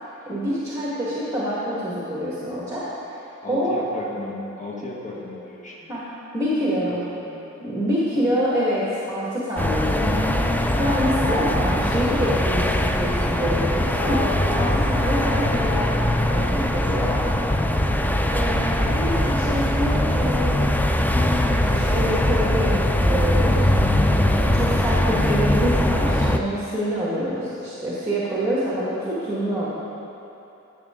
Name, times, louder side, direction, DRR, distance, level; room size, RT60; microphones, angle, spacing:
voice 1, 0.2-3.7 5.9-6.1 6.3-7.0 7.6-17.2 18.3-20.7 21.0-23.7 24.4-29.7, equal, 10° right, -8 dB, 1.7 m, -26 dB
voice 2, 3.4-6.0 6.6-7.4, left 2 dB, 25° left, -5 dB, 1.7 m, -36 dB
sound 1, 9.6-26.4, left 1 dB, 5° left, 0.4 m, -21 dB
13.0 x 6.4 x 3.7 m, 2.9 s
wide cardioid pair, 85°, 30 cm